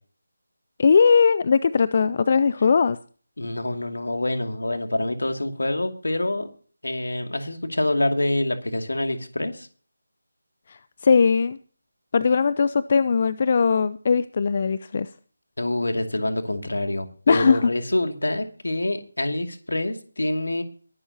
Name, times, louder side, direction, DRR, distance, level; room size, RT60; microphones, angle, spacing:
voice 1, 0.8-3.0 10.7-11.6 12.1-15.1 17.3-17.6, left 5 dB, 35° left, 0.5 m, -19 dB
voice 2, 3.4-6.5 6.8-9.7 15.6-20.6, left 1 dB, 65° left, 2.5 m, -26 dB
22.0 x 11.5 x 2.9 m
figure-of-eight pair, 155°, 0 cm